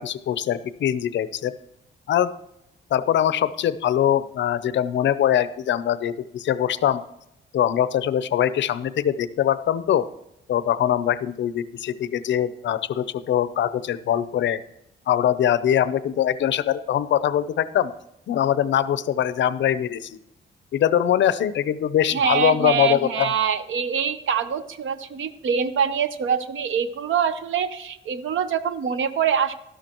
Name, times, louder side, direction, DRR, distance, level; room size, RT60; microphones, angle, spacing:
voice 1, 0.0-1.5 2.1-2.3 2.9-7.0 7.5-10.1 10.5-14.6 15.1-17.9 18.3-20.2 20.7-23.3, left 10 dB, 70° left, 15 dB, 0.6 m, -22 dB
voice 2, 22.1-29.6, right 7 dB, 85° right, 12 dB, 0.8 m, -24 dB
12.5 x 11.5 x 3.0 m, 0.84 s
wide cardioid pair, 165°, 20 cm